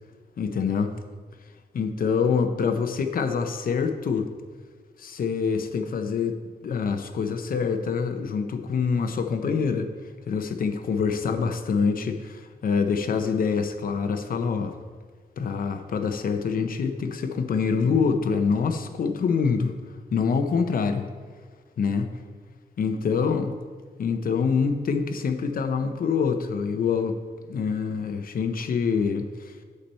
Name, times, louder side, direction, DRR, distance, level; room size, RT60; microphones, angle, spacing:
voice 1, 0.4-1.0 1.7-4.3 5.0-9.9 10.3-14.8 15.4-19.8 20.1-21.1 21.8-22.1 22.8-23.5 24.0-27.2 27.4-29.6, left 5 dB, 65° left, 7 dB, 0.7 m, -25 dB
8.3 x 6.8 x 4.3 m, 1.5 s
wide cardioid pair, 140°, 16 cm